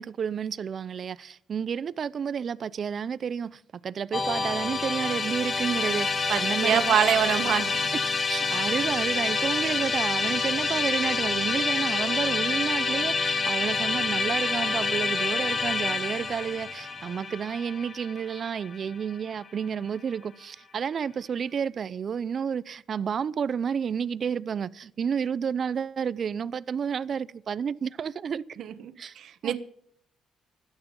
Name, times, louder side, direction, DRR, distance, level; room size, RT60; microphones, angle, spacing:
voice 1, 0.0-7.0 8.3-28.4 29.0-29.2 29.4-29.6, right 7 dB, 50° right, 0.6 m, -31 dB
Musical instrument, 4.1-19.3, left 4 dB, 35° left, 1.3 m, -28 dB
voice 2, 6.3-7.9 28.6-29.6, right 9 dB, 70° right, 1.3 m, -26 dB
17.0 x 12.0 x 5.5 m
cardioid pair, 90°, 0 cm